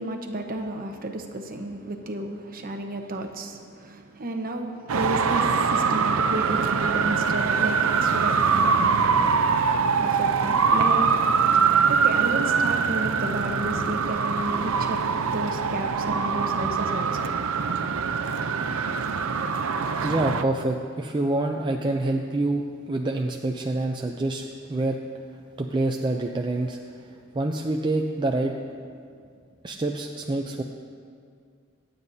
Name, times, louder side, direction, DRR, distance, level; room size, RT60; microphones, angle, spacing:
voice 1, 0.0-9.1 10.0-11.1 11.9-15.0 15.3-17.3, right 1 dB, 45° right, 4 dB, 1.0 m, -32 dB
Traffic noise roadway noise, 4.9-20.4, right 5 dB, 90° right, 0.6 m, -23 dB
voice 2, 20.0-25.0 25.6-28.5 29.6-30.6, right 2 dB, 20° right, 2 dB, 0.4 m, -27 dB
25.0 x 9.0 x 2.8 m, 2.2 s
head